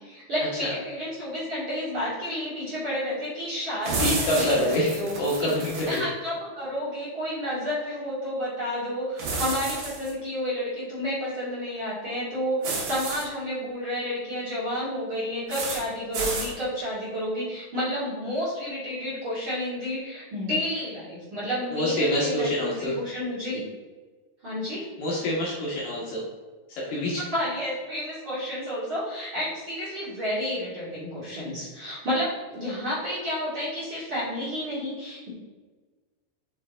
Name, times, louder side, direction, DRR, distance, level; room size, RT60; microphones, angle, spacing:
voice 1, 0.0-5.1 5.4-5.5 5.9-23.6 24.4-24.9 27.3-35.3, equal, 45° right, -9 dB, 1.9 m, -30 dB
sound 1, 3.8-6.0 9.2-10.1 12.6-13.2 15.5-15.8 16.1-16.5, right 3 dB, 60° right, 2.7 m, -30 dB
voice 2, 4.0-4.9 5.2-6.0 21.7-22.9 25.0-26.2 26.8-27.2, left 1 dB, 70° left, -5 dB, 2.2 m, -26 dB
6.6 x 6.3 x 2.6 m, 1.3 s
omnidirectional pair, 5.3 m